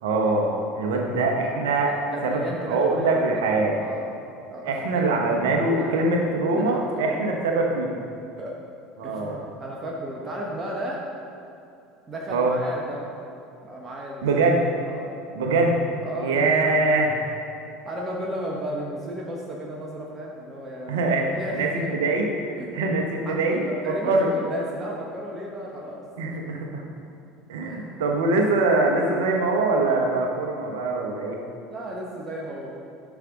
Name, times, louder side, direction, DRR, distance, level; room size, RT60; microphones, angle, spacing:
voice 1, 0.0-2.0 2.2-3.8 4.6-8.0 9.0-9.4 12.3-12.5 14.2-14.6 15.3-15.8 16.2-17.2 20.9-24.3 26.2-26.8 27.5-31.4, right 3 dB, 65° right, 1 dB, 1.1 m, -23 dB
voice 2, 1.9-3.2 3.5-4.1 4.5-7.3 8.4-8.6 9.0-11.0 12.1-13.2 13.6-14.3 14.8-15.1 16.0-16.7 17.8-21.9 22.6-22.9 23.2-26.0 27.6-28.0 31.7-32.7, right 1 dB, 25° right, -2 dB, 1.2 m, -34 dB
11.5 x 6.2 x 3.8 m, 2.6 s
figure-of-eight pair, 70°, 0 cm